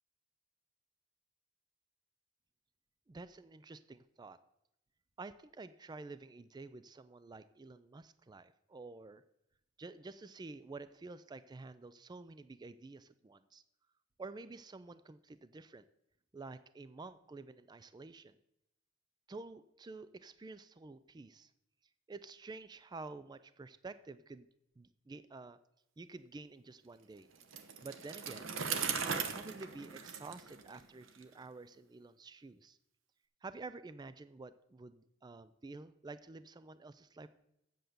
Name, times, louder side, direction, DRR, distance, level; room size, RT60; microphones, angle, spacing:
voice 1, 3.1-4.4 5.2-9.2 9.8-13.6 14.2-15.9 16.3-18.4 19.3-21.5 22.1-24.5 24.8-25.6 26.0-27.3 27.8-28.6 29.0-32.8 33.4-37.3, right 3 dB, 20° right, 14 dB, 0.3 m, -50 dB
Bicycle, 27.4-31.2, right 6 dB, 85° right, 0.9 m, -39 dB
7.8 x 7.7 x 6.8 m, 0.82 s
head